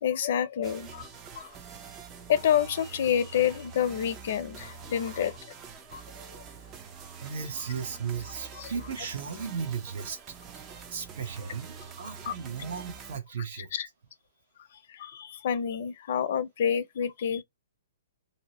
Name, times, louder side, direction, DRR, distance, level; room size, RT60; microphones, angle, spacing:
voice 1, 0.0-1.1 1.3-1.6 2.3-5.5 5.9-6.4 7.4-7.5 8.1-9.1 11.4-11.5 12.0-12.4 13.5-13.9 14.6-17.4, left 9 dB, 55° left, 0.5 m, -29 dB
sound 1, 0.6-13.2, right 6 dB, 20° right, 0.4 m, -45 dB
voice 2, 7.2-10.2 10.9-13.7, right 6 dB, 55° right, 0.9 m, -36 dB
2.7 x 2.0 x 2.8 m
hypercardioid pair, 155°, 0 cm